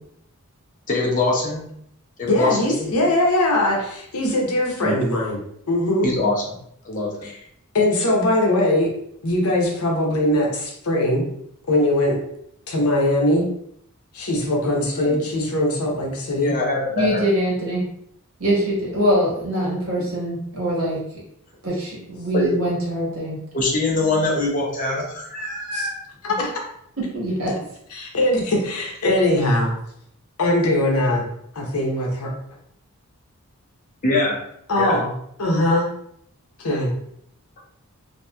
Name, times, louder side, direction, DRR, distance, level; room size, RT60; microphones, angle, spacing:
voice 1, 0.9-1.6 2.2-3.0 4.8-4.9 6.0-6.3 6.8-7.3 15.0-15.2 16.4-17.2 22.3-22.8 23.5-26.0 34.0-34.4 34.8-34.9, left 2 dB, 35° left, -3 dB, 0.6 m, -23 dB
voice 2, 2.3-5.4 5.7-6.1 7.2-7.3 7.7-8.9 9.2-11.2 11.7-12.2 12.7-13.5 14.1-16.5 25.7-25.9 26.2-26.5 27.9-29.7 30.4-32.3 34.7-35.1 35.4-35.9 36.6-36.9, left 1 dB, 75° left, -1 dB, 0.7 m, -21 dB
voice 3, 16.9-17.8 18.4-21.0 21.6-23.4 27.1-27.5, equal, 70° right, -5 dB, 1.2 m, -23 dB
2.9 x 2.6 x 2.2 m, 0.72 s
head